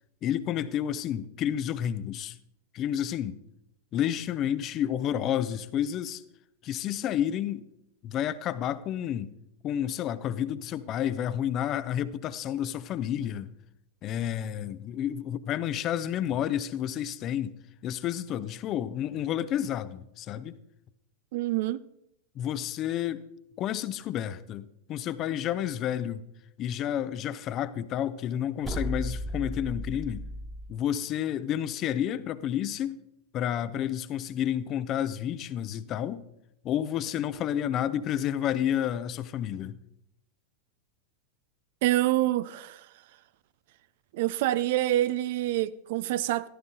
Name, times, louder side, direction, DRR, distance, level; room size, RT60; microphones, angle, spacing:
voice 1, 0.2-2.4 2.7-3.4 3.9-6.2 6.6-7.6 8.0-9.3 9.6-13.5 14.0-17.6 17.8-20.6 22.4-23.2 23.6-26.2 26.6-30.2 30.7-33.0 33.3-36.3 36.6-39.8, left 10 dB, 35° left, 0.6 m, -30 dB
voice 2, 21.3-21.8 41.8-42.9 44.1-46.5, right 15 dB, 50° right, 0.5 m, -26 dB
sound 1, 28.6-30.7, equal, 15° right, 1.4 m, -34 dB
14.5 x 13.5 x 3.7 m
figure-of-eight pair, 90°, 0 cm